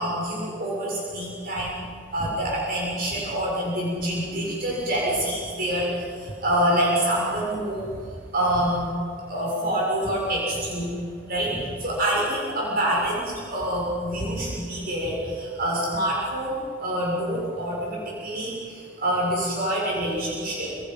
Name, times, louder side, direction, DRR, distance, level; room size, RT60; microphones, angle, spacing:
voice 1, 0.0-1.7 2.1-7.9 8.3-8.8 9.3-10.9 11.3-11.5 11.8-20.7, right 1 dB, 50° right, -4 dB, 7.2 m, -26 dB
28.5 x 27.5 x 5.8 m, 2.3 s
head